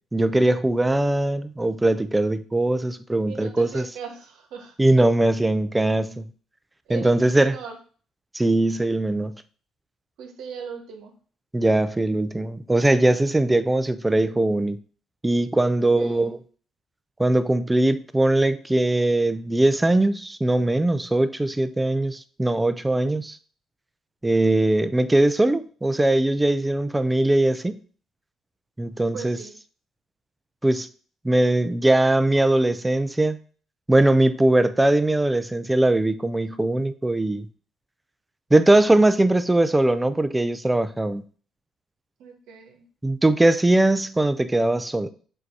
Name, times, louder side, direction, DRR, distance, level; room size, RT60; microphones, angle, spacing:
voice 1, 0.1-3.8 4.8-6.3 6.9-7.5 8.3-9.3 11.5-14.8 15.2-16.4 17.2-23.4 24.2-27.8 28.8-29.4 30.6-30.9 31.2-33.4 33.9-37.5 38.5-41.2 43.0-45.1, right 1 dB, 10° right, 0.4 m, -20 dB
voice 2, 3.3-4.8 6.9-7.8 10.2-11.1 15.6-16.2 29.1-29.5 42.2-42.8, right 6 dB, 85° right, 1.4 m, -39 dB
7.7 x 2.7 x 4.6 m
cardioid pair, 120°, 0 cm